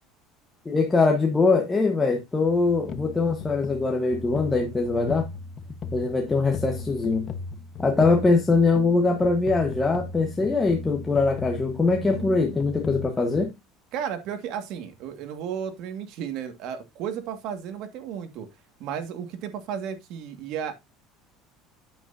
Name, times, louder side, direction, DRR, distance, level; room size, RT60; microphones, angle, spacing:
voice 1, 0.6-5.3 5.9-7.3 7.8-13.5, left 3 dB, 15° left, 1.3 m, -22 dB
sound 1, 2.4-13.5, left 4 dB, 35° left, 1.2 m, -37 dB
voice 2, 12.0-12.6 13.9-18.5 18.8-20.7, right 8 dB, 60° right, 1.9 m, -34 dB
9.0 x 8.0 x 2.7 m
cardioid pair, 135°, 0 cm